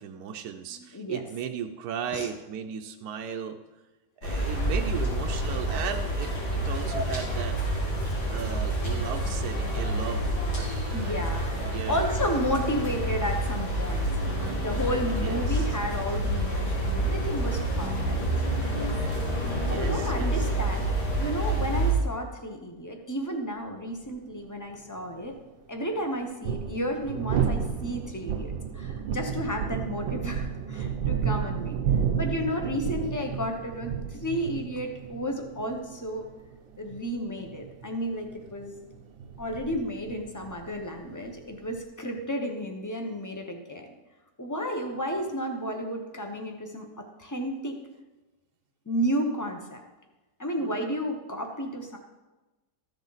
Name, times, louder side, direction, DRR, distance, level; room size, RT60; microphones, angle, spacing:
voice 1, 0.0-3.6 4.2-7.6 8.3-11.1 11.6-12.0 14.2-15.7 19.7-20.4 50.6-50.7, right 8 dB, 65° right, 5 dB, 1.0 m, -36 dB
voice 2, 0.7-1.2 2.1-2.3 10.9-18.3 18.7-18.9 19.7-20.8 21.2-25.4 25.7-31.8 32.2-36.2 36.8-38.7 39.4-43.9 44.4-47.8 48.9-49.8 50.4-52.0, equal, 20° left, 3 dB, 0.4 m, -32 dB
sound 1, 4.2-21.9, right 1 dB, 90° left, 3.8 m, -28 dB
sound 2, 24.1-24.2 26.2-41.8, right 7 dB, 90° right, 1.5 m, -32 dB
14.0 x 7.0 x 4.0 m, 1.1 s
omnidirectional pair, 2.0 m